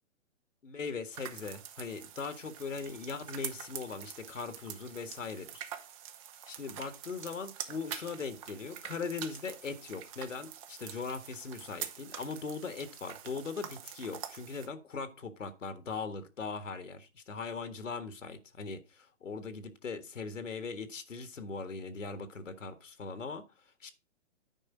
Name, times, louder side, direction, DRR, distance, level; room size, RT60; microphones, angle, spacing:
voice 1, 0.6-5.7 6.5-23.4 23.8-23.9, left 4 dB, 80° left, 1.6 m, -40 dB
sound 1, 1.1-14.7, right 10 dB, 25° right, 0.9 m, -46 dB
9.9 x 5.1 x 4.9 m
hypercardioid pair, 135°, 38 cm